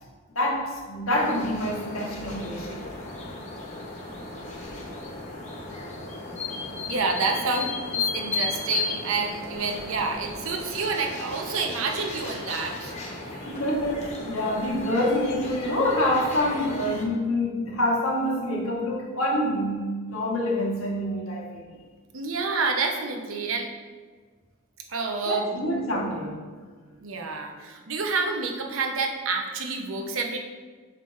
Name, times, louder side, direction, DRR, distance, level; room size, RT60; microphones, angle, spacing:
voice 1, 0.3-2.8 13.4-21.6 25.3-26.4, left 1 dB, 85° left, -3 dB, 1.4 m, -26 dB
sound 1, 1.1-17.1, left 3 dB, 35° left, 0.9 m, -35 dB
voice 2, 6.9-12.9 13.3-13.5 14.2-14.4 22.1-23.7 24.9-25.4 27.0-30.4, right 4 dB, 75° right, 3 dB, 0.7 m, -28 dB
5.7 x 5.2 x 3.2 m, 1.5 s
head